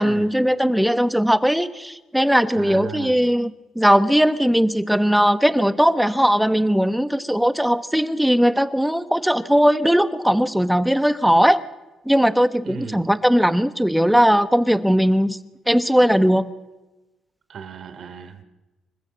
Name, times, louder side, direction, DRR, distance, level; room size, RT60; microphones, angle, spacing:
voice 1, 0.0-11.6 12.0-15.4 15.7-16.5, equal, ahead, 13 dB, 1.2 m, -18 dB
voice 2, 2.5-3.2 12.6-13.0 17.5-18.4, right 6 dB, 60° right, 9 dB, 3.0 m, -36 dB
25.5 x 15.5 x 7.5 m, 1.1 s
cardioid pair, 90°, 0 cm